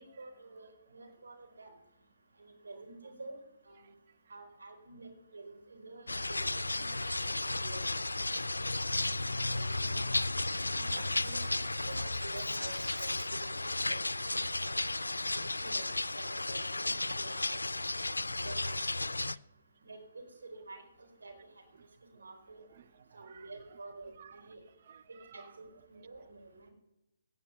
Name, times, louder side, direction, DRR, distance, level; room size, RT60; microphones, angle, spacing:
voice 1, 0.0-1.7 2.4-3.4 3.7-3.8 4.3-7.9 8.3-8.5 8.8-10.1 10.7-13.1 13.5-14.4 14.6-14.7 15.0-15.1 15.6-15.8 16.1-16.9 17.2-17.6 18.4-19.1 19.8-20.2 20.5-20.8 21.2-21.3 22.1-22.6 23.1-24.6 25.3-25.4 25.9-26.7, right 3 dB, 75° right, 4.5 m, -49 dB
sound 1, 6.1-19.4, left 2 dB, 90° left, 0.4 m, -34 dB
voice 2, 10.8-12.1 12.4-13.3 22.7-23.8 24.2-24.4 24.8-25.8, right 9 dB, 50° right, 0.6 m, -55 dB
17.5 x 6.6 x 8.1 m
figure-of-eight pair, 140°, 0 cm